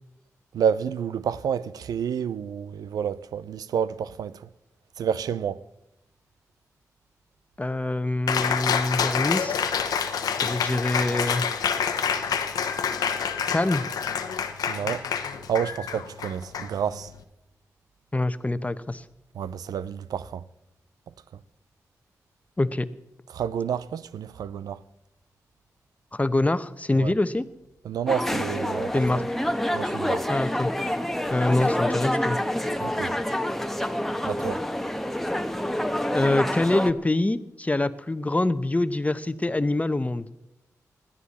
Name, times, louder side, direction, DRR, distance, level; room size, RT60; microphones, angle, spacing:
voice 1, 0.5-4.5 5.0-5.6 14.7-15.1 15.5-17.1 19.3-20.4 23.3-24.8 26.9-27.1 27.8-29.2 29.7-30.2 32.8-33.1 34.2-34.6, right 8 dB, 85° right, 0.5 m, -29 dB
voice 2, 7.6-9.6 10.4-11.5 13.5-13.8 18.1-19.0 22.6-22.9 26.1-27.4 28.9-29.2 30.3-30.7 31.3-32.4 36.1-40.3, left 2 dB, 25° left, 1.0 m, -25 dB
Cheering, 8.3-17.2, left 7 dB, 85° left, 1.0 m, -28 dB
sound 1, 28.1-36.9, left 1 dB, 5° left, 1.3 m, -27 dB
20.5 x 13.5 x 4.2 m
supercardioid pair, 40°, 6 cm